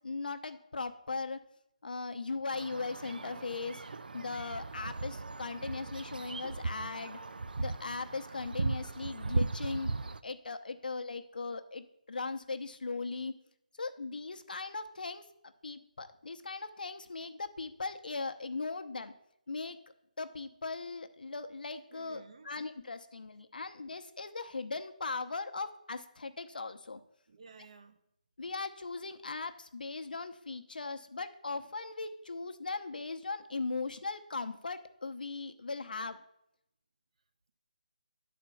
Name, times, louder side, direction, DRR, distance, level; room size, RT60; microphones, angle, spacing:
voice 1, 0.0-1.4 1.8-7.2 7.6-9.9 10.2-13.3 13.8-15.3 15.6-19.1 19.5-19.8 20.2-27.0 28.4-36.2, left 3 dB, 75° left, 0.8 m, -39 dB
sound 1, 2.5-10.2, right 3 dB, 90° right, 0.4 m, -37 dB
voice 2, 21.9-22.5 27.3-28.0, right 5 dB, 45° right, 0.8 m, -54 dB
10.0 x 4.3 x 6.9 m
hypercardioid pair, 170°, 5 cm